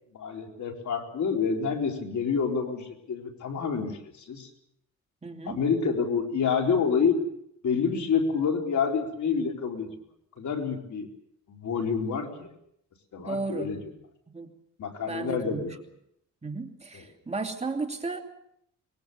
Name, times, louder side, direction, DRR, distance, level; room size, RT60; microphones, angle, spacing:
voice 1, 0.2-4.5 5.5-7.2 7.6-9.9 10.4-11.1 11.5-12.5 13.1-13.8 14.8-15.8 16.9-17.0, left 6 dB, 65° left, 2 dB, 4.2 m, -28 dB
voice 2, 5.2-5.6 13.2-13.7 14.3-14.5 15.1-15.7 16.4-18.2, right 3 dB, 20° right, 3 dB, 2.7 m, -34 dB
24.0 x 21.5 x 6.9 m, 0.74 s
cardioid pair, 105°, 31 cm